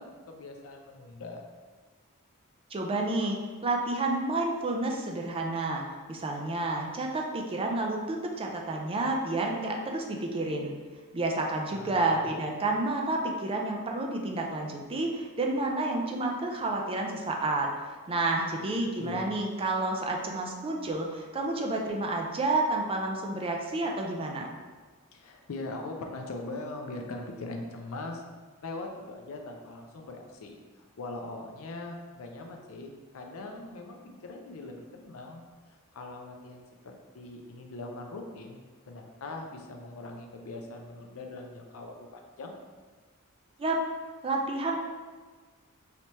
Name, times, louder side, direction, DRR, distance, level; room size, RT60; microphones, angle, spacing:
voice 1, 0.0-1.4 11.7-12.3 19.0-19.3 25.1-28.2 28.6-35.4 35.9-42.5, left 2 dB, 65° left, 3 dB, 0.5 m, -41 dB
voice 2, 2.7-5.8 6.1-10.7 11.1-17.7 18.1-24.5 43.6-43.8 44.2-44.8, right 2 dB, 25° right, 1 dB, 0.4 m, -30 dB
3.3 x 2.8 x 3.0 m, 1.4 s
head